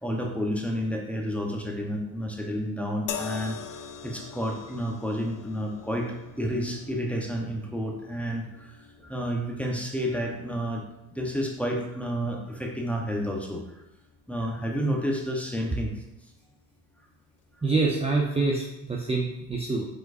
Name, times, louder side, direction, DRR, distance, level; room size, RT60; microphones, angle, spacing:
voice 1, 0.0-3.6 4.0-8.7 9.0-10.8 11.1-13.6 14.3-15.9, equal, 5° left, 0 dB, 1.0 m, -30 dB
sound 1, 3.1-16.4 17.4-17.5, left 7 dB, 45° left, 0.6 m, -45 dB
voice 2, 17.6-19.9, right 3 dB, 15° right, -2 dB, 0.7 m, -26 dB
5.2 x 3.8 x 2.6 m, 0.90 s
hypercardioid pair, 65°, 44 cm